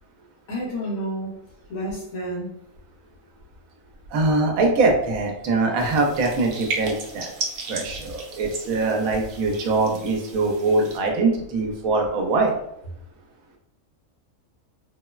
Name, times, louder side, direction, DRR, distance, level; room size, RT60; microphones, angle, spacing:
voice 1, 0.5-1.3 1.7-2.5, equal, 80° left, -7 dB, 1.5 m, -30 dB
voice 2, 4.1-7.3 7.7-12.5, right 3 dB, 90° right, 2 dB, 1.1 m, -22 dB
sound 1, 5.8-11.0, right 3 dB, 65° right, 0.8 m, -35 dB
3.4 x 2.0 x 2.3 m, 0.80 s
omnidirectional pair, 1.4 m